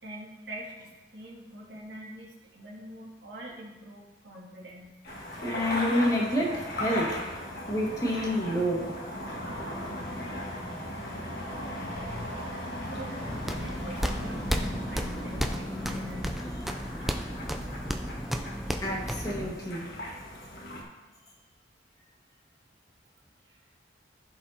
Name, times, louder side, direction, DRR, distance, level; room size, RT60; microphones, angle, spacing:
voice 1, 0.0-5.0 12.9-16.5 17.0-17.1 23.5-23.6, right 1 dB, 75° right, -4 dB, 2.1 m, -45 dB
sound 1, 5.0-20.8, left 1 dB, 60° left, 1.7 m, -37 dB
voice 2, 5.4-7.2 7.7-8.9 18.8-19.9, equal, 20° left, -3 dB, 1.5 m, -28 dB
sound 2, 13.3-19.5, equal, ahead, 0.4 m, -33 dB
14.5 x 5.1 x 2.8 m, 1.2 s
head